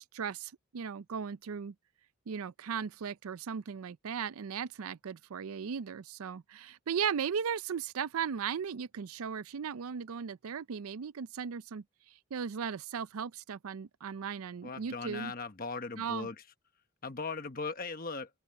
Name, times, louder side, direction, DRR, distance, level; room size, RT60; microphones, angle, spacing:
voice 1, 0.0-1.7 2.3-11.8 12.3-15.3 16.0-16.3, right 7 dB, 75° right, 0.5 m, -37 dB
voice 2, 14.6-16.4 17.0-18.3, left 4 dB, 40° left, 1.1 m, -38 dB
head